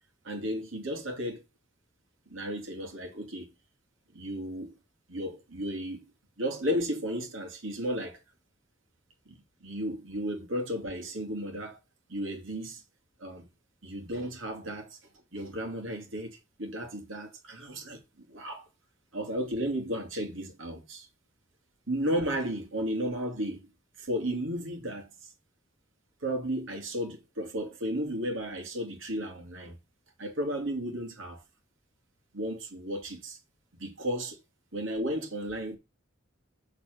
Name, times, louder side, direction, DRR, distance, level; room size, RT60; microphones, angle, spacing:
voice 1, 0.2-1.4 2.3-3.5 4.1-4.7 5.1-6.0 6.4-8.2 9.3-11.8 12.1-12.8 13.2-13.4 13.8-15.0 15.3-18.0 18.3-18.7 19.1-21.1 21.9-23.6 24.0-25.3 26.2-29.8 30.2-31.4 32.3-33.4 33.8-34.4 34.7-35.8, equal, 85° right, 2.2 m, -34 dB
6.8 x 4.1 x 6.1 m
head